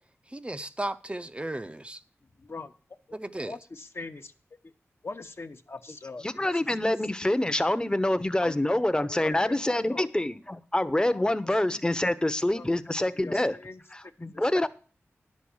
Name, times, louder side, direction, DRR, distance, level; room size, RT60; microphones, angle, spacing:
voice 1, 0.3-2.0 3.1-3.6, right 1 dB, 20° right, 0.5 m, -35 dB
voice 2, 2.4-2.7 3.1-3.2 3.4-4.3 4.6-4.7 5.0-6.2 6.9-7.0 8.4-8.8 9.1-10.1 11.1-11.2 11.7-11.8 12.2-12.7 13.2-13.8 14.2-14.4, left 3 dB, 55° left, 0.9 m, -42 dB
voice 3, 6.2-13.6 13.9-14.7, left 1 dB, 15° left, 0.8 m, -26 dB
10.0 x 6.3 x 7.1 m
wide cardioid pair, 55°, 5 cm